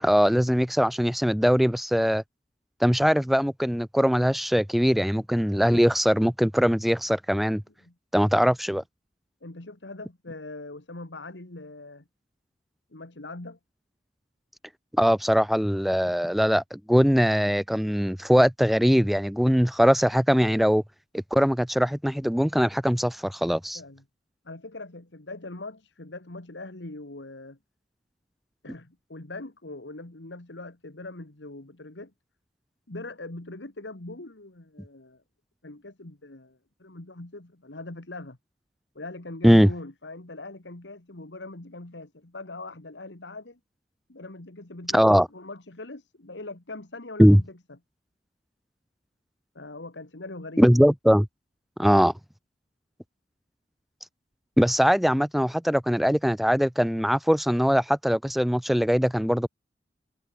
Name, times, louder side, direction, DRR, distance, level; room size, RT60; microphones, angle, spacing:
voice 1, 0.0-2.2 2.8-7.6 8.1-8.8 14.9-20.8 21.1-23.8 39.4-39.7 44.9-45.3 47.2-47.4 50.6-51.3 51.8-52.1 54.6-59.5, equal, ahead, 0.4 m, -21 dB
voice 2, 9.4-12.0 12.9-13.6 23.7-24.0 24.4-27.6 28.6-32.1 32.9-35.2 35.6-38.4 39.0-43.6 44.1-47.8 49.5-50.7, left 2 dB, 90° left, 2.0 m, -41 dB
head